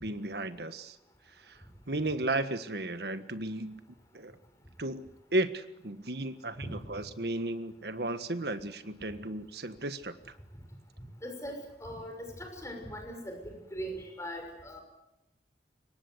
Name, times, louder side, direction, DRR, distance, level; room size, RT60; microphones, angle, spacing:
voice 1, 0.0-1.0 1.5-1.6 1.9-3.8 4.1-4.3 4.8-10.3, right 2 dB, 65° right, 10 dB, 1.6 m, -34 dB
voice 2, 11.2-14.8, equal, 15° left, 3 dB, 6.2 m, -40 dB
25.5 x 23.0 x 8.1 m, 0.91 s
head